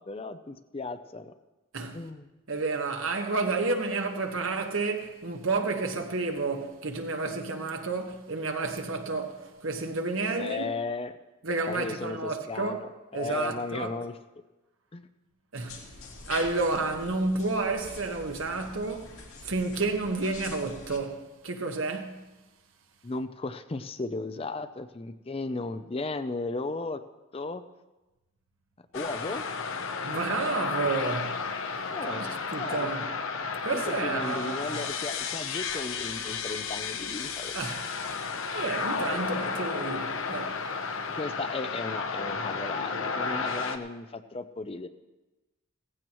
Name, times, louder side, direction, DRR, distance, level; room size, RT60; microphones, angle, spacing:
voice 1, 0.0-1.3 1.9-2.3 10.4-11.1 11.7-14.1 14.9-15.0 23.0-27.0 27.3-27.6 28.9-29.4 31.9-32.2 32.6-32.9 33.7-37.5 39.3-39.5 41.1-44.9, left 3 dB, 25° left, 0.5 m, -35 dB
voice 2, 2.5-10.7 11.4-12.8 13.1-13.9 15.5-15.9 16.3-19.1 19.4-22.2 30.0-31.5 32.0-33.1 33.6-34.8 37.5-37.9 38.5-40.6, right 3 dB, 70° right, 1.3 m, -30 dB
sound 1, 15.7-21.0, left 3 dB, 85° left, 2.4 m, -45 dB
sound 2, 28.9-43.8, left 5 dB, 70° left, 0.9 m, -33 dB
17.0 x 15.0 x 3.1 m
head